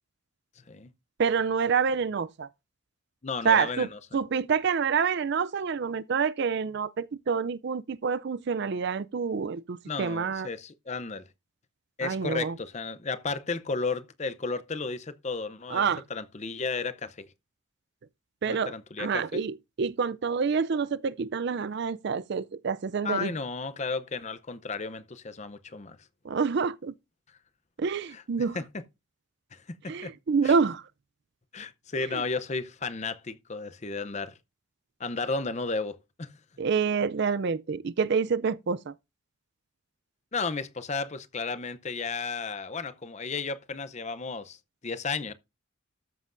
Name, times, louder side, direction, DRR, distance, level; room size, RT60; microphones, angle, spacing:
voice 1, 0.6-0.9 3.2-4.0 9.9-11.3 12.0-15.8 16.1-17.3 18.5-19.4 23.0-26.0 28.1-28.2 28.5-28.6 29.5-30.1 30.4-30.6 31.5-34.4 35.0-36.4 40.3-44.6 44.8-45.3, left 4 dB, 30° left, 0.6 m, -33 dB
voice 2, 1.2-2.5 3.4-3.9 4.1-10.5 12.0-12.6 15.7-16.0 18.4-18.7 19.0-23.3 26.2-26.9 27.8-28.6 29.9-30.8 32.1-32.2 36.6-38.9, right 5 dB, 50° right, 0.4 m, -27 dB
13.0 x 7.6 x 2.5 m
head